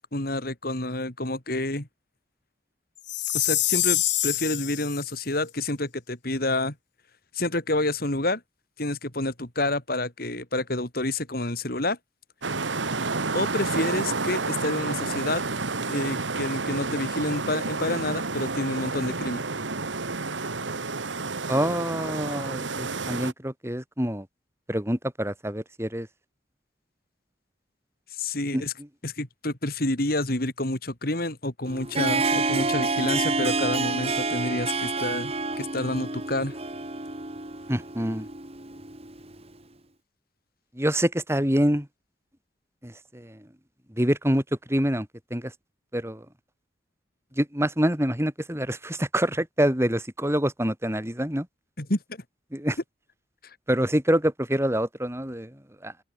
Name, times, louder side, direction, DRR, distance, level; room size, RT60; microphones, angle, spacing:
voice 1, 0.1-1.9 3.3-6.8 7.3-8.4 8.8-12.0 13.3-15.4 15.9-19.4 28.2-28.7 29.0-36.6 51.8-52.2, left 2 dB, 55° left, 3.6 m, -28 dB
Chime, 3.1-5.1, left 15 dB, 70° left, 2.7 m, -25 dB
sound 1, 12.4-23.3, right 3 dB, 85° right, 1.9 m, -30 dB
voice 2, 21.5-24.3 24.7-26.1 28.5-28.6 37.7-38.3 40.8-41.9 42.8-43.4 44.0-44.4 44.7-45.5 45.9-46.2 47.4-51.5 52.5-52.8 53.7-55.5 55.8-55.9, equal, 15° right, 4.3 m, -26 dB
Harp, 31.7-39.4, right 3 dB, 35° right, 3.1 m, -28 dB
head